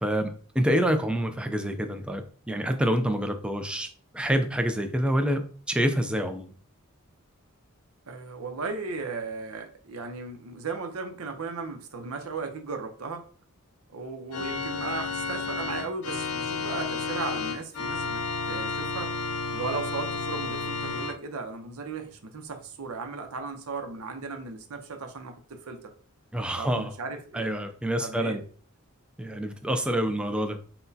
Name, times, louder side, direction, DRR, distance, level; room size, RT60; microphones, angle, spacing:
voice 1, 0.0-6.5 26.3-26.9 27.3-28.4 29.2-30.6, equal, 5° right, 6 dB, 0.4 m, -27 dB
voice 2, 8.1-13.2 13.9-19.1 19.5-25.9 26.6-27.5 28.0-28.4, right 4 dB, 80° right, 6 dB, 0.7 m, -36 dB
Organ, 14.3-21.2, left 4 dB, 85° left, 0.5 m, -32 dB
5.7 x 2.2 x 2.7 m, 0.42 s
head